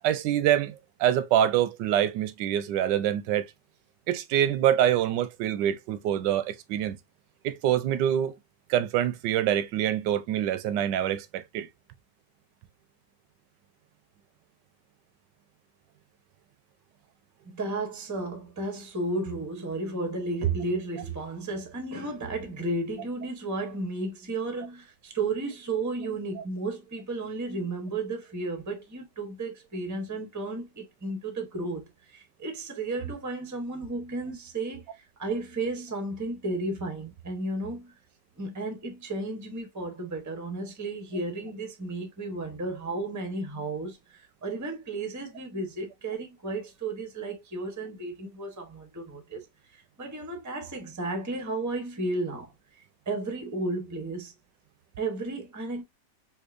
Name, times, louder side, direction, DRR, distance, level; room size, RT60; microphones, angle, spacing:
voice 1, 0.0-3.5 4.1-7.0 7.4-8.3 8.7-11.7, right 11 dB, 80° right, 1.2 m, -25 dB
voice 2, 17.4-37.9 38.4-49.4 49.7-52.5 53.1-54.3 55.0-55.8, right 2 dB, 20° right, 0.5 m, -33 dB
4.3 x 2.7 x 2.4 m
omnidirectional pair, 1.9 m